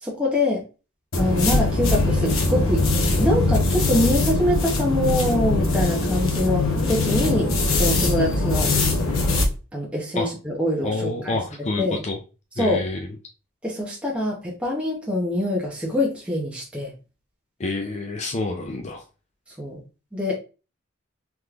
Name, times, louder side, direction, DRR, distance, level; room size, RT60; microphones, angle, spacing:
voice 1, 0.0-0.6 1.2-2.8 3.2-8.7 9.7-11.4 11.8-12.0 12.6-12.8 13.6-16.9 19.6-19.8 20.1-20.4, left 1 dB, 5° right, -4 dB, 0.8 m, -24 dB
sound 1, 1.1-9.5, left 2 dB, 75° left, 0.8 m, -21 dB
voice 2, 10.8-12.2 12.6-13.2 17.6-19.0, left 2 dB, 30° left, 2 dB, 0.4 m, -28 dB
3.5 x 3.0 x 2.4 m, 0.32 s
head